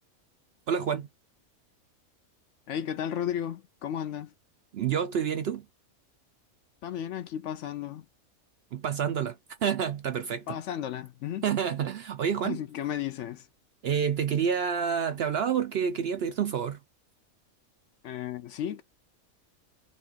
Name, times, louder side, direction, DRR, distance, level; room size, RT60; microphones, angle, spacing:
voice 1, 0.7-1.1 4.7-5.7 8.7-10.6 11.4-12.6 13.8-16.8, right 7 dB, 65° right, 0.6 m, -28 dB
voice 2, 2.7-4.3 6.8-8.1 10.5-11.4 12.4-13.5 18.0-18.8, left 10 dB, 65° left, 0.8 m, -34 dB
5.1 x 2.3 x 3.9 m
omnidirectional pair, 1.5 m